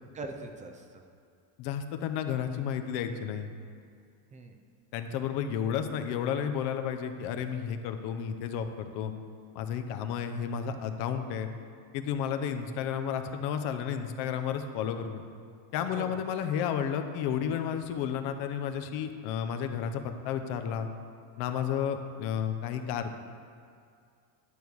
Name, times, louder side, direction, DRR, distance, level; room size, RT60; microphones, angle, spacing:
voice 1, 0.1-0.8 4.3-4.6 15.9-16.2, right 3 dB, 15° right, 5 dB, 0.4 m, -41 dB
voice 2, 1.6-3.5 4.9-9.1 9.5-11.5 11.9-15.2 15.7-20.9 21.4-23.1, left 8 dB, 55° left, 7 dB, 0.9 m, -32 dB
11.5 x 6.9 x 4.7 m, 2.3 s
cardioid pair, 155°, 47 cm